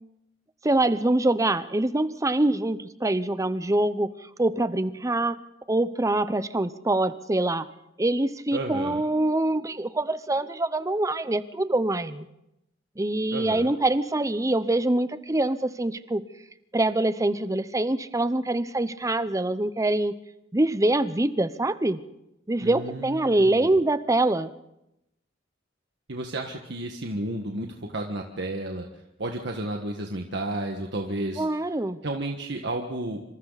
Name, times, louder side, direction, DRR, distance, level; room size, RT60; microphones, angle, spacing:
voice 1, 0.6-4.1 4.4-5.4 5.7-7.7 8.0-12.3 13.0-16.2 16.7-20.2 20.5-22.0 22.5-24.5 31.4-32.0, right 2 dB, 15° right, 14 dB, 0.8 m, -24 dB
voice 2, 8.5-9.0 13.3-13.7 22.6-23.7 26.1-28.9 29.2-31.4 32.0-33.2, right 1 dB, 65° right, 2 dB, 1.7 m, -32 dB
27.0 x 26.0 x 4.1 m, 0.86 s
head